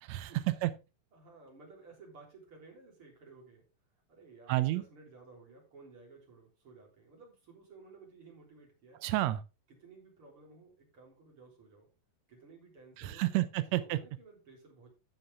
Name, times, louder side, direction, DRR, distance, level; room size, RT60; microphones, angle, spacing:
voice 1, 0.0-0.7 4.5-4.8 9.0-9.4 13.0-14.0, right 16 dB, 85° right, 13 dB, 1.5 m, -30 dB
voice 2, 1.1-3.6 4.1-9.0 9.7-11.9 12.3-13.3 13.8-14.9, right 4 dB, 40° right, -1 dB, 4.4 m, -56 dB
14.5 x 5.9 x 3.6 m, 0.29 s
omnidirectional pair, 3.9 m